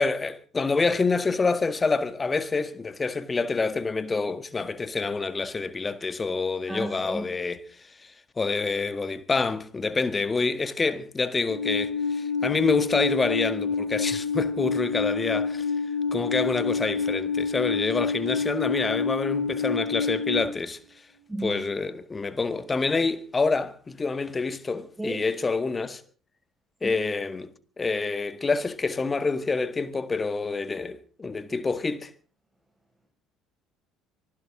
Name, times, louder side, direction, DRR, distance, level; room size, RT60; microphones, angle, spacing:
voice 1, 0.0-7.6 8.4-15.7 16.1-20.8 21.4-26.0 26.8-32.1, left 4 dB, 25° left, 1.7 m, -27 dB
voice 2, 6.7-7.2 21.3-21.5 25.0-25.2 26.8-26.9, right 2 dB, 5° right, 5.3 m, -32 dB
Alarm, 11.5-20.4, left 5 dB, 80° left, 5.8 m, -28 dB
24.5 x 15.0 x 3.7 m
figure-of-eight pair, 55°, 0 cm